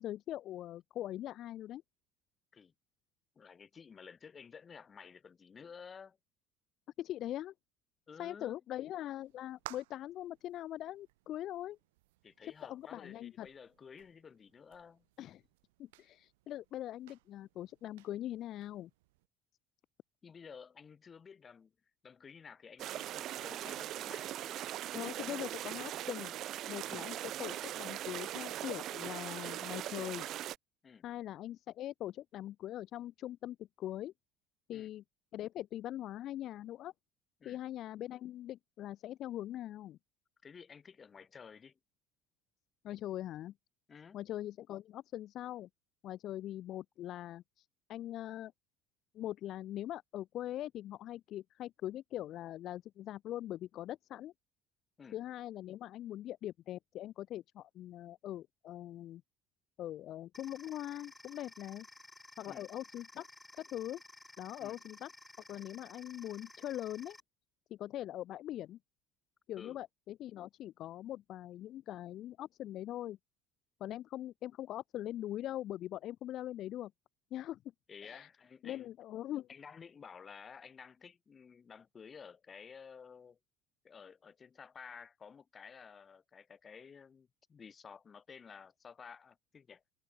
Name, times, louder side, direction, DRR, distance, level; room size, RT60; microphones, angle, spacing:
voice 1, 0.0-1.8 7.0-7.5 8.2-11.8 12.6-13.5 15.2-15.4 15.8-18.9 24.9-26.4 26.7-30.3 31.0-34.1 34.7-35.0 35.3-36.9 37.4-40.0 42.8-43.5 44.1-45.7 46.0-48.5 49.1-54.3 55.1-59.2 59.8-61.9 62.4-63.3 63.5-64.0 64.4-65.1 65.5-67.2 67.7-68.8 69.5-73.2 73.8-76.9 77.3-77.6 78.0-78.3 78.6-79.5, left 13 dB, 55° left, 1.2 m, -42 dB
voice 2, 3.4-6.2 8.1-8.6 12.2-15.0 20.2-21.7 22.0-24.7 26.9-27.1 30.8-31.1 34.7-34.9 37.4-37.6 40.4-41.8 43.9-44.2 55.0-55.2 62.4-62.7 64.6-64.8 69.6-69.8 77.9-78.9 79.5-83.4 83.8-89.8, left 6 dB, 35° left, 6.0 m, -53 dB
sound 1, 9.2-19.3, right 20 dB, 85° right, 6.8 m, -58 dB
sound 2, 22.8-30.6, right 13 dB, 55° right, 0.8 m, -40 dB
sound 3, 60.3-67.2, left 2 dB, 10° left, 5.9 m, -55 dB
supercardioid pair, 80°, 0 cm